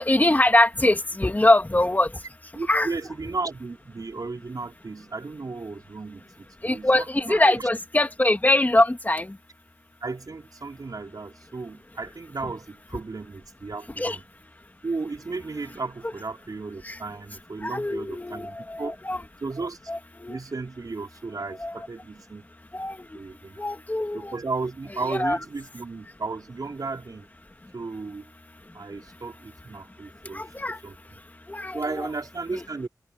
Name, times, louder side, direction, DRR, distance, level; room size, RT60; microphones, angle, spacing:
voice 1, 0.0-2.1 2.7-2.9 6.6-9.3 14.0-14.2 16.8-17.0 17.6-19.2 19.9-20.4 21.6-21.9 22.7-23.0 23.6-24.3 25.1-25.4 30.3-30.8 31.5-32.1 32.5-32.6, left 1 dB, 25° left, 2.5 m, -23 dB
voice 2, 2.5-7.7 10.0-14.2 14.8-19.0 19.4-19.8 20.3-22.4 23.1-23.6 24.1-27.3 27.7-28.3 28.7-30.5 30.8-31.0 31.7-32.9, right 3 dB, 60° right, 4.0 m, -34 dB
wide cardioid pair, 65°, 7 cm